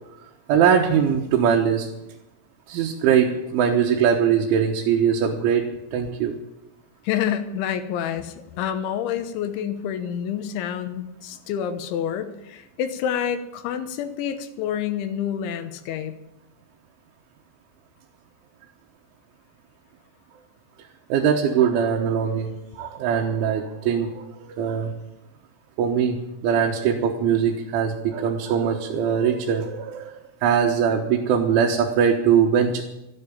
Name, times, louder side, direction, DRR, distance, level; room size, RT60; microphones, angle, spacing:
voice 1, 0.5-1.9 2.7-6.4 21.1-24.9 25.8-32.8, right 7 dB, 80° right, 0 dB, 3.6 m, -21 dB
voice 2, 7.0-16.2, left 9 dB, 80° left, 9 dB, 3.3 m, -28 dB
13.5 x 10.5 x 8.7 m, 0.92 s
omnidirectional pair, 5.5 m